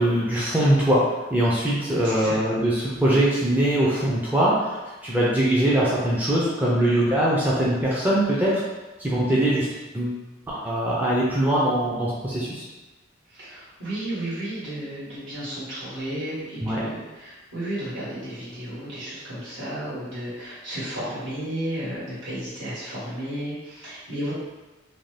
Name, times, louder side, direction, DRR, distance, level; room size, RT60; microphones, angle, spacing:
voice 1, 0.0-8.6 9.0-9.7 9.9-10.2 10.5-12.6 16.6-16.8, right 1 dB, 10° right, -7 dB, 0.4 m, -22 dB
voice 2, 2.0-2.4 13.3-24.3, right 1 dB, 70° right, -9 dB, 1.4 m, -33 dB
2.6 x 2.1 x 3.1 m, 1.1 s
head